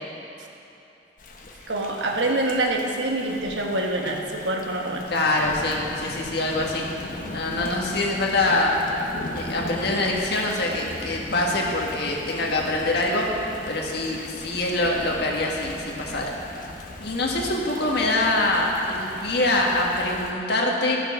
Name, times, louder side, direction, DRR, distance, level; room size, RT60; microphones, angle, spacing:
Thunder / Rain, 1.2-20.3, left 1 dB, 50° left, 0.9 m, -39 dB
voice 1, 1.7-5.1 7.5-7.6, right 2 dB, 90° right, 1 dB, 1.2 m, -26 dB
voice 2, 5.1-6.8 7.3-8.7 9.3-13.3 13.7-16.3 17.0-21.0, left 2 dB, 65° left, -1 dB, 1.6 m, -24 dB
13.5 x 6.6 x 6.1 m, 2.9 s
head